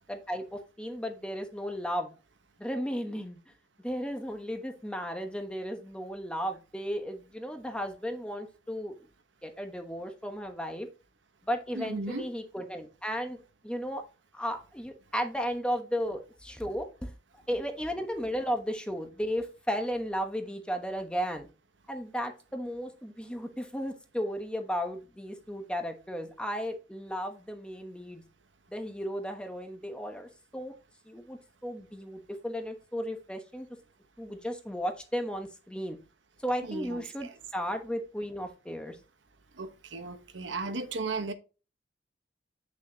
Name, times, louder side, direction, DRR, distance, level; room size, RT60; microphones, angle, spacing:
voice 1, 0.1-2.1 2.6-3.4 3.8-9.1 9.4-10.9 11.4-13.4 13.6-14.0 14.3-17.1 17.5-21.5 21.9-28.2 28.7-30.7 31.1-33.7 34.2-36.0 36.4-39.0, equal, 5° left, 1.1 m, -34 dB
voice 2, 11.8-12.2 36.7-37.3 39.6-41.3, right 3 dB, 85° right, 1.0 m, -35 dB
8.2 x 6.3 x 2.8 m
head